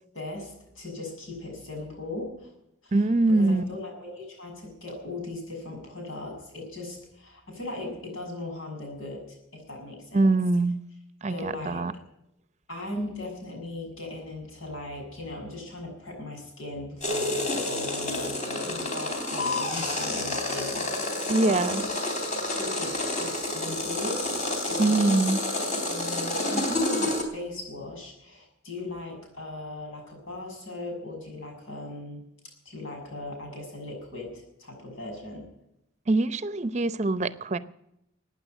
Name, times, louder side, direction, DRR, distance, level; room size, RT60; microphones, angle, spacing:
voice 1, 0.1-2.5 2.8-9.2 9.5-10.3 11.3-11.9 12.7-21.9 22.3-25.2 25.5-32.2 32.6-35.5, left 2 dB, 80° left, 2 dB, 6.8 m, -38 dB
voice 2, 2.9-3.6 10.1-10.8 11.2-11.9 21.3-21.8 24.8-25.4 36.1-37.6, right 2 dB, 35° right, 14 dB, 0.7 m, -23 dB
sound 1, 17.0-27.2, left 1 dB, 35° left, 3.5 m, -29 dB
15.5 x 9.5 x 9.2 m, 0.83 s
head